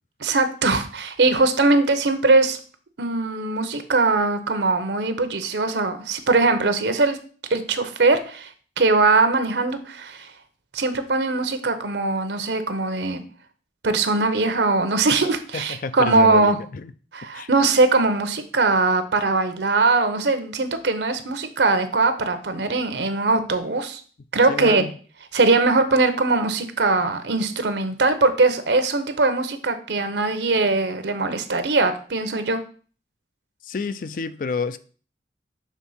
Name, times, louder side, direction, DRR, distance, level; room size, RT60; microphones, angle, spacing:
voice 1, 0.2-2.6 3.0-7.2 7.5-8.5 8.8-10.3 10.7-13.2 13.8-16.6 17.1-24.0 24.3-24.8 25.3-32.6, right 3 dB, 75° right, 0.8 m, -21 dB
voice 2, 15.5-16.9 17.3-17.5 24.5-24.9 33.6-34.8, left 4 dB, 45° left, 0.4 m, -28 dB
6.4 x 3.5 x 5.6 m
head